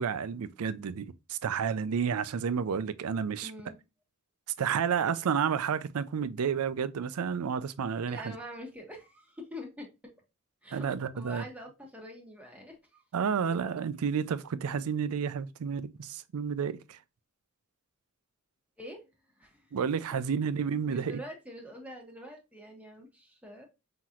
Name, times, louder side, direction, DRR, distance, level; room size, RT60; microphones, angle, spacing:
voice 1, 0.0-3.5 4.6-8.4 10.7-11.4 13.1-17.0 19.7-21.2, right 6 dB, 80° right, 0.4 m, -31 dB
voice 2, 3.4-3.8 8.1-9.9 10.6-10.9 11.1-13.0 18.8-19.1 19.4-19.7 20.1-20.2 20.9-23.7, equal, 5° right, 1.2 m, -45 dB
5.8 x 2.9 x 2.4 m
head